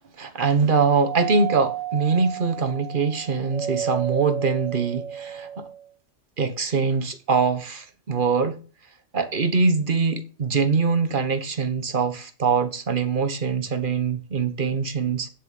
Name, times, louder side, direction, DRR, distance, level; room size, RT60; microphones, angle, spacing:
voice 1, 0.2-5.7 6.4-8.6 9.1-15.3, right 4 dB, 45° right, 1.2 m, -23 dB
Doorbell, 1.0-5.8, right 10 dB, 80° right, 2.8 m, -32 dB
7.5 x 6.8 x 7.7 m
omnidirectional pair, 1.3 m